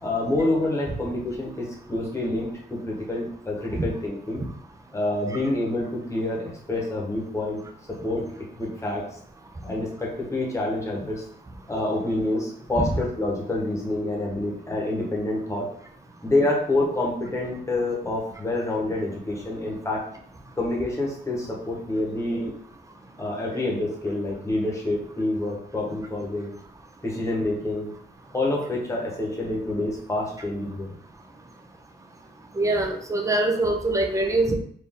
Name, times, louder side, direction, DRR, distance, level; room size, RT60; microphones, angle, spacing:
voice 1, 0.0-4.4 4.9-7.6 7.9-9.0 9.6-11.2 11.7-15.7 16.2-20.1 20.6-22.5 23.2-26.5 27.0-27.9 28.3-31.0, left 2 dB, 15° left, -2 dB, 1.2 m, -27 dB
voice 2, 32.5-34.5, right 2 dB, 15° right, 3 dB, 0.6 m, -23 dB
4.3 x 2.7 x 3.6 m, 0.62 s
wide cardioid pair, 130°, 19 cm